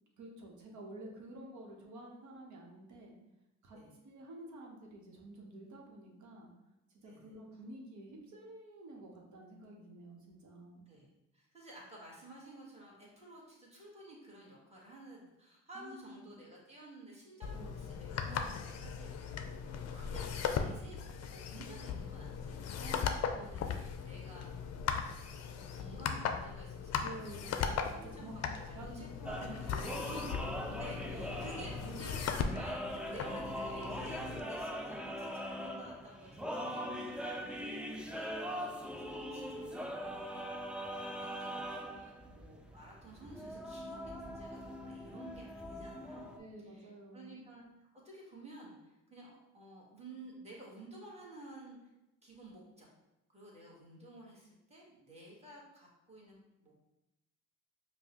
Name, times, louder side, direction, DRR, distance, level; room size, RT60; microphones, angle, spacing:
voice 1, 0.2-3.1 3.6-3.8 4.0-6.5 7.0-10.9 15.7-16.3 17.5-17.7 22.8-23.9 27.0-29.0 29.3-30.8 32.0-32.1 33.1-33.4 36.5-37.1 46.4-47.4, right 1 dB, 70° right, 0 dB, 0.9 m, -50 dB
voice 2, 11.3-19.4 19.7-20.3 20.6-24.5 24.8-25.0 25.5-27.6 27.9-30.0 30.8-46.4 46.7-51.8 52.2-52.9 53.3-56.7, right 1 dB, 20° right, -4 dB, 1.3 m, -53 dB
sound 1, 17.4-34.4, left 6 dB, 60° left, 0.4 m, -38 dB
sound 2, 29.3-46.4, equal, 5° right, 0.3 m, -42 dB
5.2 x 2.1 x 2.9 m, 0.92 s
cardioid pair, 90°, 30 cm